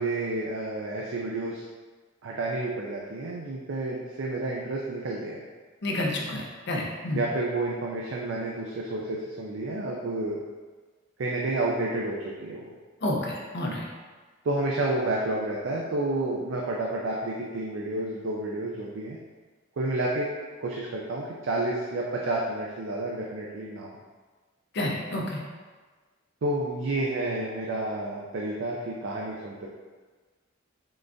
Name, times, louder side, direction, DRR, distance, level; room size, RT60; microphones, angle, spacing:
voice 1, 0.0-1.6 2.2-5.5 7.1-10.4 11.2-12.6 14.4-19.2 19.8-20.3 20.6-23.9 26.4-29.7, right 2 dB, 65° right, -2 dB, 0.4 m, -30 dB
voice 2, 5.8-7.3 13.0-13.9 24.7-25.4, left 1 dB, 55° left, -1 dB, 0.6 m, -29 dB
3.8 x 3.3 x 2.5 m, 1.4 s
head